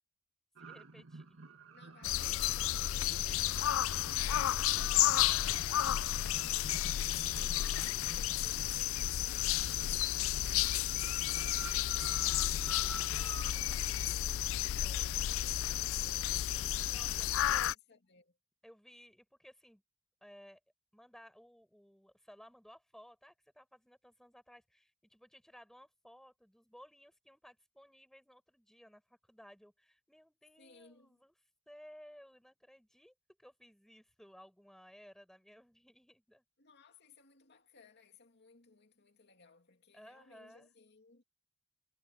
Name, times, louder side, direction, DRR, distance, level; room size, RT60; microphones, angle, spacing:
voice 1, 0.6-1.4 16.9-17.6 18.6-19.8 20.2-20.6 20.9-31.3 31.7-33.1 33.4-36.4 39.9-40.7, equal, ahead, 5.8 m, -58 dB
sound 1, 0.6-13.5, right 3 dB, 85° right, 1.7 m, -50 dB
voice 2, 1.7-3.8 6.9-13.9 14.5-18.4 30.6-31.2 36.6-41.2, left 4 dB, 60° left, 2.6 m, -62 dB
sound 2, 2.0-17.7, left 13 dB, 80° left, 0.3 m, -32 dB
head